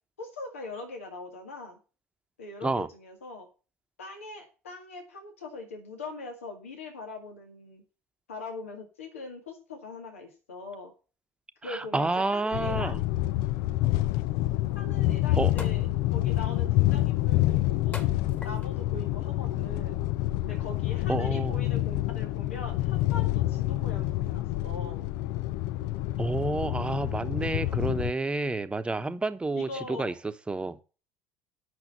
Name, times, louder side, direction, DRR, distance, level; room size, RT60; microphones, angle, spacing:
voice 1, 0.2-1.8 2.4-3.5 4.0-7.8 8.3-10.9 11.6-13.0 14.7-18.1 18.4-20.0 20.4-25.1 29.5-30.1, left 3 dB, 85° left, 3 dB, 2.0 m, -41 dB
voice 2, 11.6-13.0 15.4-15.5 21.1-21.6 26.2-30.8, right 2 dB, 15° right, 10 dB, 1.0 m, -29 dB
sound 1, 12.5-28.1, left 16 dB, 65° left, 0.4 m, -27 dB
sound 2, 14.7-14.8 15.6-16.0 16.5-16.9 17.9-18.8 19.6-19.8, left 3 dB, 25° left, 2.0 m, -43 dB
8.3 x 6.3 x 6.6 m, 0.35 s
hypercardioid pair, 65°, 7 cm